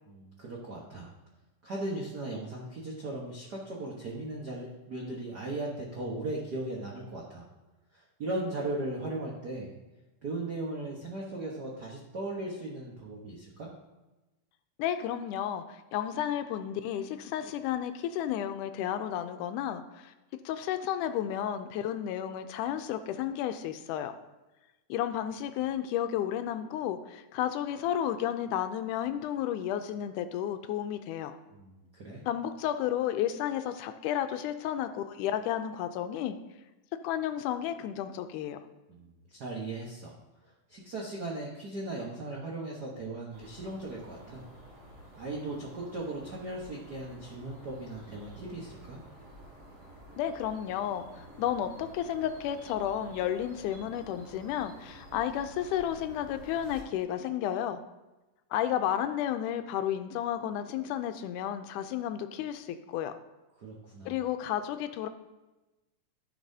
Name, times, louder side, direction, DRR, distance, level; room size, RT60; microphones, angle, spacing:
voice 1, 0.1-1.1 1.6-7.4 7.9-9.7 10.2-13.7 31.5-32.2 38.9-40.1 40.7-44.4 45.2-49.0 63.6-64.2, right 2 dB, 75° right, -3 dB, 0.9 m, -37 dB
voice 2, 14.8-20.1 20.5-24.1 24.9-31.4 32.3-36.4 37.0-38.6 50.2-57.8 58.5-63.1 64.1-65.1, left 10 dB, 80° left, 9 dB, 2.0 m, -32 dB
sound 1, 43.3-56.8, right 1 dB, 50° right, 3.3 m, -51 dB
14.0 x 5.9 x 2.7 m, 1.1 s
omnidirectional pair, 3.7 m